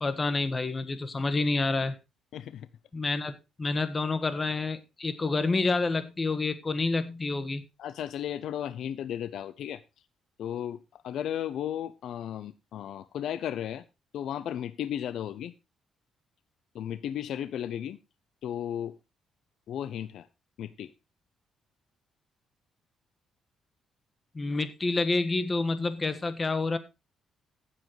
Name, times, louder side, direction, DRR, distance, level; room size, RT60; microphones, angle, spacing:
voice 1, 0.0-2.0 2.9-7.6 24.3-26.8, left 3 dB, 30° left, 1.5 m, -28 dB
voice 2, 2.3-2.7 7.8-9.8 10.4-13.8 14.1-15.5 16.7-18.0 18.4-19.0 19.7-20.3 20.6-20.9, left 10 dB, 75° left, 0.6 m, -35 dB
16.5 x 7.6 x 3.1 m
cardioid pair, 90°, 0 cm